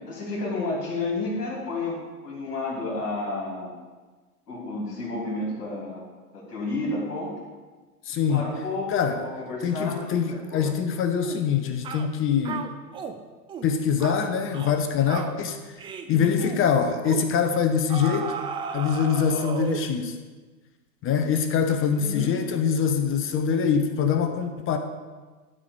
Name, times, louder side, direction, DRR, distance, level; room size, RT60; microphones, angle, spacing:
voice 1, 0.0-2.0 2.2-3.8 4.5-6.0 6.3-7.4 8.3-10.7 16.0-16.5 22.0-22.4, left 2 dB, 70° left, -5 dB, 3.5 m, -31 dB
voice 2, 8.0-8.5 8.9-9.2 9.6-12.7 13.6-15.6 16.1-18.4 18.7-20.2 21.0-24.8, left 7 dB, 25° left, 7 dB, 0.9 m, -24 dB
sound 1, 11.2-11.5 11.8-12.1 12.4-13.2 13.5-13.7 14.0-14.2 14.5-14.8 15.1-15.4 15.8-16.1 16.4-16.6 17.1-17.3 17.9-19.9, right 6 dB, 10° right, 0.4 m, -34 dB
12.5 x 4.9 x 6.9 m, 1.3 s
figure-of-eight pair, 95°, 46 cm